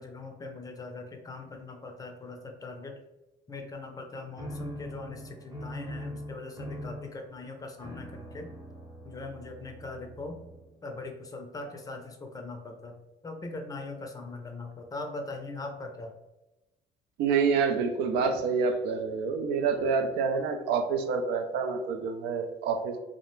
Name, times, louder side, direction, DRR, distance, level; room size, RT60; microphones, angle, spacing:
voice 1, 0.0-2.9 3.5-8.5 9.0-10.4 10.8-12.9 13.2-16.1, left 3 dB, 20° left, 3 dB, 0.4 m, -41 dB
sound 1, 4.4-10.8, equal, 20° right, 0.7 m, -42 dB
voice 2, 17.2-23.0, right 5 dB, 85° right, 6 dB, 0.4 m, -27 dB
2.4 x 2.0 x 3.0 m, 0.99 s
cardioid pair, 110°, 17 cm